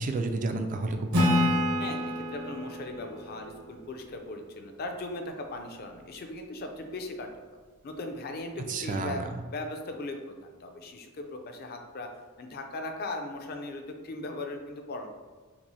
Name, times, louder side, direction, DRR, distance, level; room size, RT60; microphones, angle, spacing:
voice 1, 0.0-1.5 8.7-9.4, right 2 dB, 35° right, 6 dB, 0.3 m, -31 dB
Acoustic guitar / Strum, 1.1-4.6, left 1 dB, 80° right, 1.1 m, -29 dB
voice 2, 1.8-7.3 7.8-9.2 9.5-10.3 10.6-12.1 12.4-15.1, left 2 dB, 45° left, 4 dB, 0.5 m, -38 dB
5.8 x 2.0 x 2.7 m, 1.4 s
head